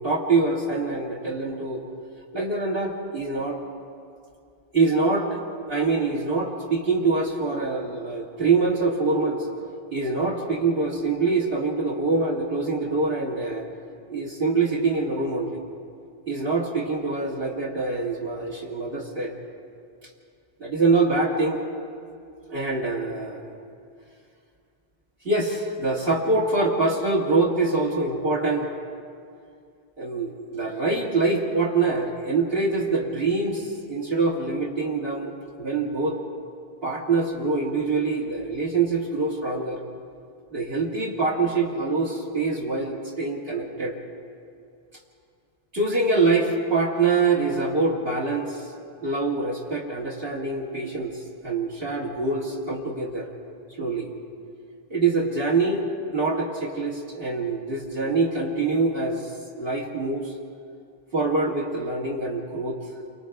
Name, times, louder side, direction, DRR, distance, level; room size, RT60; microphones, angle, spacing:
voice 1, 0.0-1.8 2.3-3.6 4.7-5.4 5.7-9.5 9.9-13.6 14.1-15.6 16.3-19.3 20.6-21.6 22.5-23.4 25.2-28.7 30.0-36.2 36.8-39.8 40.5-44.0 45.7-48.7 49.0-53.3 53.8-54.1 54.9-55.8 56.1-59.3 59.6-60.3 61.1-62.8, right 3 dB, 65° right, -3 dB, 2.3 m, -25 dB
29.0 x 25.0 x 3.6 m, 2.4 s
omnidirectional pair, 1.1 m